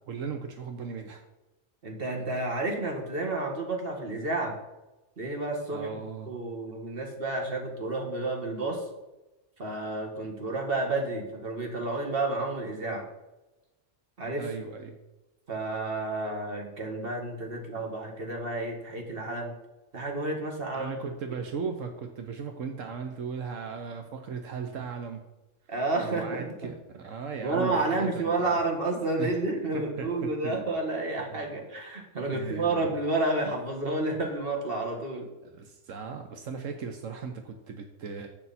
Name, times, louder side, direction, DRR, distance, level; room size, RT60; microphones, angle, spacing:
voice 1, 0.1-1.2 5.7-6.3 14.4-15.0 20.7-25.2 26.0-28.6 29.2-29.3 29.7-30.6 31.3-31.5 32.3-32.9 35.4-38.3, right 5 dB, 80° right, 5 dB, 1.3 m, -37 dB
voice 2, 1.8-4.5 5.2-8.8 9.6-13.1 14.2-14.5 15.5-19.5 19.9-20.9 25.7-26.5 27.4-35.3, right 2 dB, 45° right, 1 dB, 2.1 m, -30 dB
11.0 x 8.0 x 4.3 m, 1.0 s
omnidirectional pair, 1.3 m